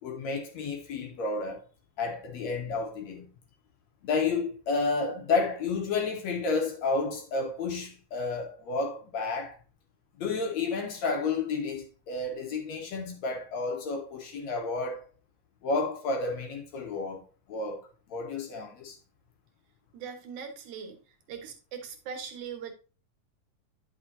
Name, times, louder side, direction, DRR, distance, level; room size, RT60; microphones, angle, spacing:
voice 1, 0.0-1.6 2.0-3.3 4.0-9.6 10.2-15.0 15.6-17.2 17.5-19.0, left 4 dB, 60° left, 2.4 m, -31 dB
voice 2, 19.9-21.0 21.3-22.7, right 6 dB, 65° right, 2.7 m, -40 dB
9.9 x 6.4 x 2.7 m
omnidirectional pair, 3.8 m